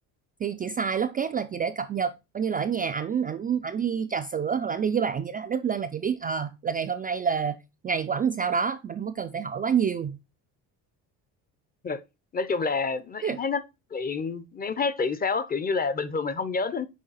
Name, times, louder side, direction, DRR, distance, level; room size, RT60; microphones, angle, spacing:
voice 1, 0.4-7.6 7.8-10.2 13.2-13.4, right 7 dB, 25° right, 0.3 m, -28 dB
voice 2, 12.3-13.6 13.9-16.9, left 4 dB, 25° left, 0.6 m, -28 dB
6.3 x 3.8 x 4.0 m
cardioid pair, 100°, 39 cm